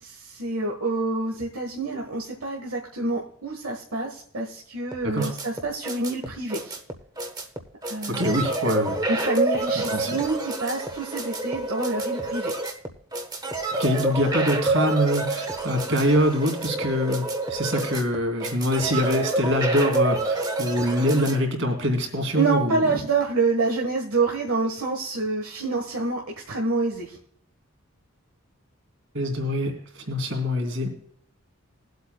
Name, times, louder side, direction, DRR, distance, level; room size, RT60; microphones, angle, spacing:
voice 1, 0.0-6.8 7.9-8.4 9.1-12.5 22.3-26.2 26.5-27.2, right 3 dB, 85° right, -1 dB, 1.4 m, -27 dB
sound 1, 4.9-21.4, right 2 dB, 20° right, 1.0 m, -28 dB
voice 2, 8.1-9.0 9.7-10.2 13.8-23.0 29.1-30.9, equal, 60° right, 3 dB, 2.9 m, -24 dB
21.5 x 8.1 x 2.2 m, 0.67 s
head